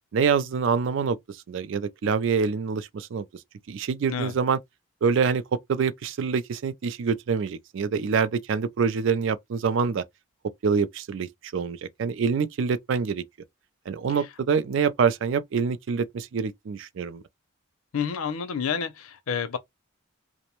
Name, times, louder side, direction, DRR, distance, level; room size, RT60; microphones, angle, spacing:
voice 1, 0.1-3.3 3.7-4.6 5.0-5.4 5.7-10.0 10.6-13.3 13.9-17.2, right 5 dB, 65° right, 0.3 m, -26 dB
voice 2, 17.9-19.6, left 6 dB, 90° left, 0.5 m, -29 dB
2.5 x 2.0 x 2.9 m
head